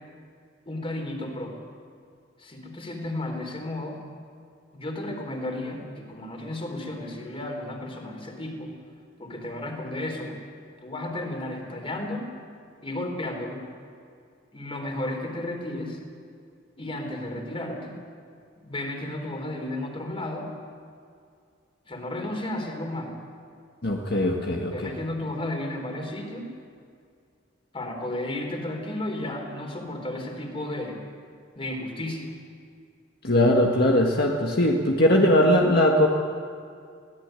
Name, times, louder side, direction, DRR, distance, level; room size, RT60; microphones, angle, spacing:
voice 1, 0.7-1.6 2.4-4.0 4.7-8.7 9.2-10.4 10.8-12.3 12.8-13.6 14.5-16.0 16.8-18.0 18.6-20.5 21.9-23.1 24.7-26.5 27.7-31.0 31.6-32.3, left 1 dB, 30° left, 3 dB, 3.8 m, -33 dB
voice 2, 23.8-24.7 33.2-36.1, left 1 dB, 55° left, 0 dB, 1.7 m, -20 dB
22.5 x 17.0 x 9.1 m, 2.3 s
head